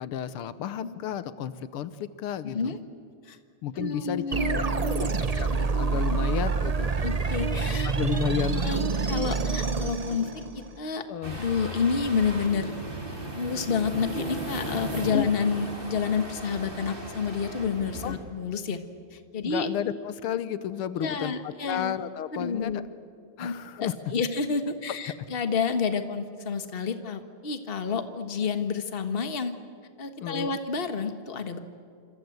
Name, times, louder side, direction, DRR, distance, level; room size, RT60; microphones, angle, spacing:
voice 1, 0.0-2.8 3.6-4.2 4.5-4.6 5.0-5.1 5.3-6.9 7.8-8.8 11.1-11.4 15.1-15.3 18.0-18.1 19.4-22.8 23.4-24.0 30.2-30.6, left 10 dB, 80° left, 13 dB, 1.8 m, -32 dB
voice 2, 2.4-2.8 3.3-3.4 3.8-5.1 6.1-6.2 7.0-11.0 11.4-12.7 13.3-18.8 19.1-19.7 21.0-22.0 22.3-22.8 23.4-29.5 30.0-31.6, left 5 dB, 30° left, 8 dB, 1.5 m, -29 dB
sound 1, 4.3-10.8, right 4 dB, 70° right, 0.3 m, -27 dB
sound 2, 11.2-18.2, right 1 dB, 25° right, 3.9 m, -36 dB
27.0 x 26.5 x 8.0 m, 2.3 s
omnidirectional pair, 2.4 m